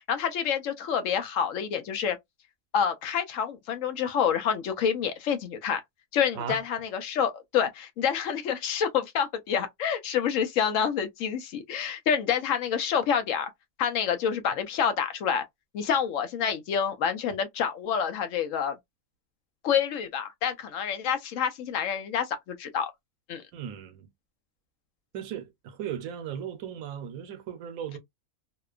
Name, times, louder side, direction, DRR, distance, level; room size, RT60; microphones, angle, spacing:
voice 1, 0.1-2.2 2.7-5.8 6.1-13.5 13.8-15.5 15.7-18.7 19.6-22.9 23.3-23.4, left 7 dB, 75° left, 0.9 m, -28 dB
voice 2, 23.5-24.1 25.1-28.0, right 8 dB, 85° right, 1.1 m, -37 dB
2.8 x 2.2 x 2.3 m
omnidirectional pair, 1.4 m